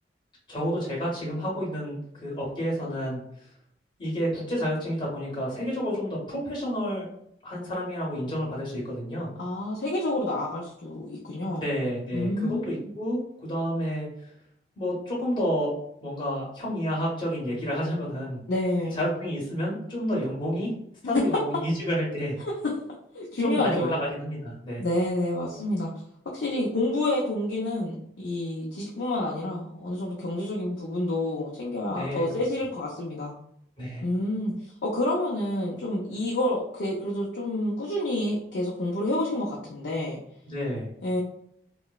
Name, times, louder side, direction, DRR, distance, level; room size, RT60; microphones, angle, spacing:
voice 1, 0.5-3.4 4.0-7.1 7.4-9.3 11.5-14.1 14.8-15.7 16.0-18.4 18.9-20.7 21.0-22.4 23.4-24.8 31.8-32.3 33.8-34.0 40.5-40.9, equal, 25° left, -4 dB, 0.9 m, -30 dB
voice 2, 9.4-11.7 12.1-12.7 18.5-19.0 21.1-21.2 22.4-22.5 23.1-24.0 24.8-25.9 26.3-33.3 34.0-34.5 34.8-40.2 41.0-41.2, left 1 dB, 75° left, -3 dB, 0.5 m, -28 dB
3.0 x 2.0 x 2.3 m, 0.72 s
head